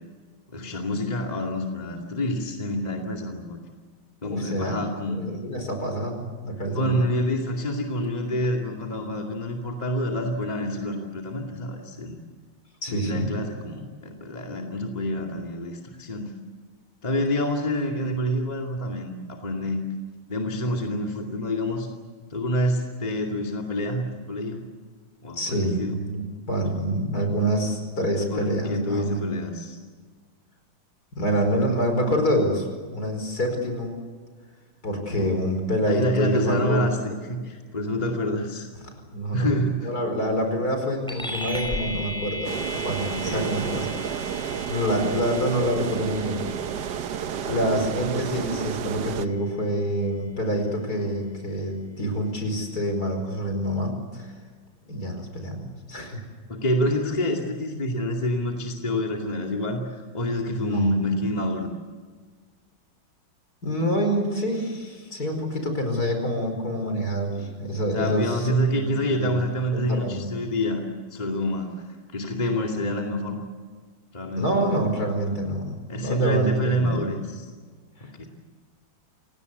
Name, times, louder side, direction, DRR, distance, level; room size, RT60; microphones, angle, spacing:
voice 1, 0.5-3.6 4.2-5.2 6.7-12.2 12.9-16.3 17.0-19.8 20.3-21.9 22.3-24.6 25.2-26.0 28.3-29.8 35.9-38.7 39.3-39.9 43.1-43.5 44.8-45.0 47.4-47.6 56.5-61.7 67.4-67.6 67.9-70.8 71.1-71.8 72.1-73.5 74.1-74.8 75.9-77.5 78.0-78.2, equal, 20° left, 1 dB, 2.4 m, -27 dB
voice 2, 4.3-4.8 5.1-7.1 12.8-13.3 25.3-29.2 31.1-32.7 32.9-33.9 34.8-36.9 39.1-39.6 39.8-43.9 44.2-46.4 47.4-54.3 54.9-56.2 60.5-61.0 63.6-68.5 68.7-69.4 69.7-70.3 74.4-77.1 78.0-78.3, equal, 45° left, 4 dB, 5.3 m, -27 dB
sound 1, 41.1-50.9, equal, ahead, 5.5 m, -37 dB
sound 2, 42.4-49.3, right 8 dB, 65° right, 1.4 m, -31 dB
29.0 x 18.0 x 8.1 m, 1.5 s
omnidirectional pair, 2.2 m